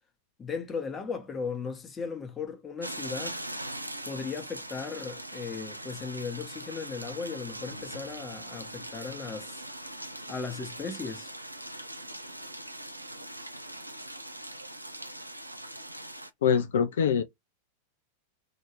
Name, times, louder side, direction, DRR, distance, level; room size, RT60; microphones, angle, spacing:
voice 1, 0.4-3.4 4.0-9.6 10.3-11.3, left 5 dB, 20° left, 0.9 m, -37 dB
sound 1, 2.8-16.3, right 1 dB, 85° right, 0.4 m, -41 dB
voice 2, 16.4-17.2, left 7 dB, 60° left, 0.4 m, -24 dB
2.9 x 2.7 x 2.9 m
figure-of-eight pair, 90°, 0 cm